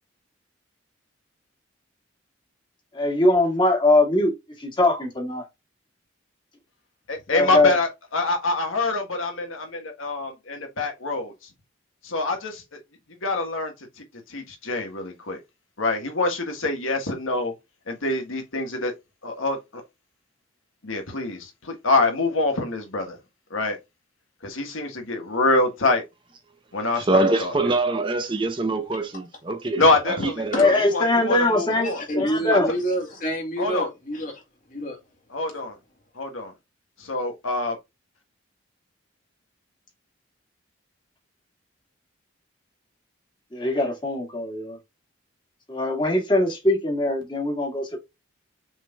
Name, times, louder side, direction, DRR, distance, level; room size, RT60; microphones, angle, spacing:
voice 1, 2.9-4.3 4.6-5.4 7.3-7.7 30.6-32.7 43.5-44.8 45.7-48.0, left 2 dB, 25° left, 1.8 m, -21 dB
voice 2, 7.1-11.3 12.0-12.6 13.2-13.7 14.3-15.4 15.8-17.5 17.9-18.9 19.2-19.6 20.8-23.2 23.5-23.8 24.4-26.0 26.7-27.5 29.8-32.0 32.5-32.6 33.6-33.9 35.3-35.8 36.1-36.5 37.0-37.8, left 2 dB, 80° left, 1.4 m, -25 dB
voice 3, 27.0-30.7, right 2 dB, 25° right, 0.6 m, -24 dB
voice 4, 31.8-34.4 34.7-35.0, equal, 40° left, 2.0 m, -28 dB
6.1 x 3.7 x 2.3 m
head